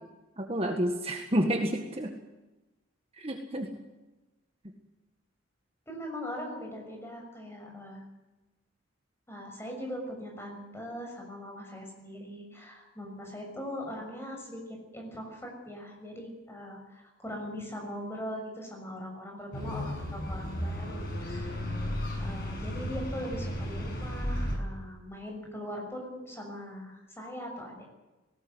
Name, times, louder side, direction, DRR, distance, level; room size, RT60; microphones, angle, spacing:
voice 1, 0.4-2.1 3.2-3.7, equal, 30° right, 3 dB, 1.8 m, -29 dB
voice 2, 5.9-8.1 9.3-21.6 22.2-27.9, equal, 10° left, 1 dB, 6.6 m, -41 dB
sound 1, 19.5-24.6, equal, 50° left, 6.6 m, -34 dB
19.0 x 18.5 x 8.1 m, 1.1 s
head